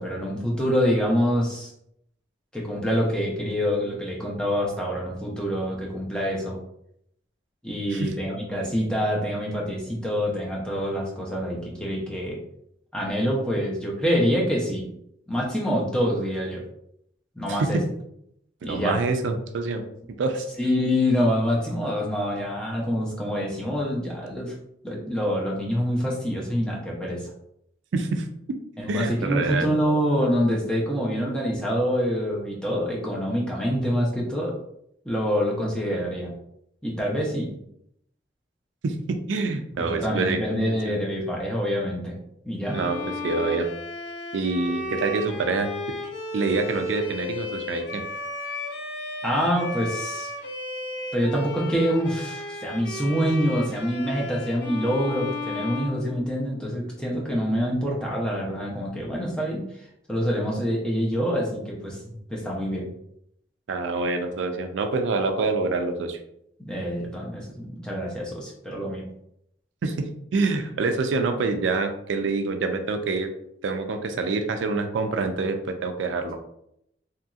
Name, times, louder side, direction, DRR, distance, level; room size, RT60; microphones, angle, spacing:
voice 1, 0.0-1.7 2.5-6.6 7.6-12.4 12.9-14.9 15.3-16.6 17.4-17.8 18.6-19.0 20.6-24.5 24.8-27.3 28.8-34.6 35.0-36.3 36.8-37.5 39.8-42.2 42.4-42.8 49.2-50.3 51.1-62.9 66.6-69.1, equal, 5° left, -3 dB, 0.6 m, -26 dB
voice 2, 18.6-19.8 20.2-20.5 27.9-28.3 28.9-29.7 38.8-40.9 42.7-43.7 44.3-45.7 46.3-48.0 63.7-66.2 69.8-73.3 73.6-76.4, right 3 dB, 80° right, 6 dB, 0.4 m, -26 dB
Bowed string instrument, 42.6-56.7, left 2 dB, 65° left, 0.5 m, -34 dB
2.8 x 2.7 x 2.3 m, 0.75 s
head